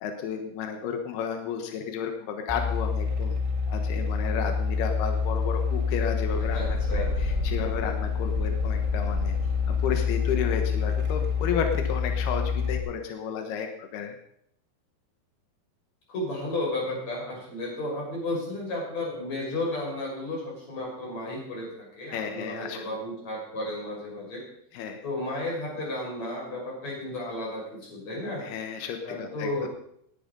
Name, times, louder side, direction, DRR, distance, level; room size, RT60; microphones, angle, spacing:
voice 1, 0.0-3.3 3.7-9.4 9.8-14.2 22.1-22.9 24.7-25.0 28.4-29.7, left 7 dB, 80° left, 5 dB, 3.3 m, -32 dB
sound 1, 2.5-12.8, left 5 dB, 10° right, 1.7 m, -27 dB
voice 2, 6.5-7.4 16.1-24.4 25.0-28.5 29.0-29.7, left 1 dB, 45° left, -2 dB, 7.3 m, -33 dB
19.0 x 11.0 x 5.4 m, 0.71 s
omnidirectional pair, 4.5 m